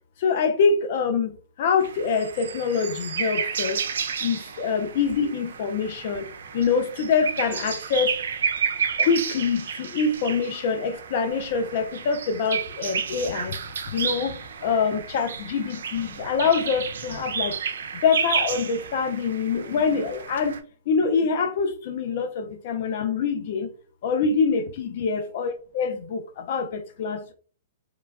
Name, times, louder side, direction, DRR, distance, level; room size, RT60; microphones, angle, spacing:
voice 1, 0.2-1.3 1.6-3.8 4.2-6.3 6.5-8.2 9.0-13.5 13.9-17.5 18.0-20.6 20.9-23.7 24.0-27.3, left 5 dB, 55° left, 0.4 m, -25 dB
sound 1, 1.8-20.6, right 6 dB, 70° right, 0.3 m, -31 dB
3.0 x 2.2 x 2.3 m
hypercardioid pair, 125°, 0 cm